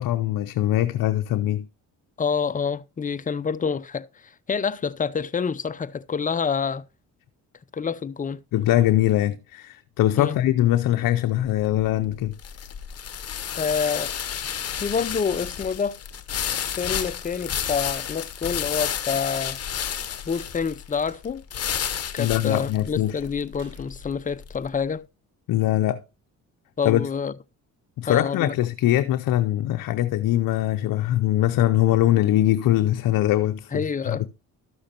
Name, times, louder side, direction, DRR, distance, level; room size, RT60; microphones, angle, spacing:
voice 1, 0.0-1.7 8.5-12.3 22.2-23.2 25.5-26.0 26.8-27.1 28.0-34.3, left 13 dB, 65° left, 0.6 m, -22 dB
voice 2, 2.2-6.8 7.7-8.4 10.2-10.4 13.6-14.1 14.7-16.0 16.8-19.6 20.3-21.4 22.1-25.1 26.8-27.3 28.0-28.5 33.7-34.2, left 6 dB, 25° left, 0.5 m, -27 dB
sound 1, 11.4-24.7, left 8 dB, 45° left, 0.9 m, -31 dB
sound 2, 21.1-21.3 23.6-24.5, right 4 dB, 80° right, 3.4 m, -55 dB
12.5 x 6.4 x 2.8 m
cardioid pair, 80°, 35 cm